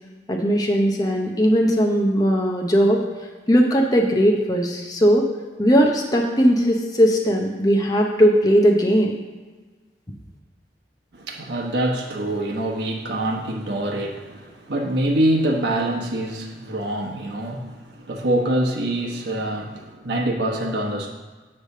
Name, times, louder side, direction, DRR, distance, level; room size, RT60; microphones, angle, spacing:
voice 1, 0.3-3.0 3.5-5.3 5.6-9.1, equal, 20° left, 1 dB, 0.7 m, -18 dB
voice 2, 11.1-21.1, right 1 dB, 70° right, 0 dB, 1.0 m, -25 dB
8.1 x 3.3 x 6.5 m, 1.3 s
head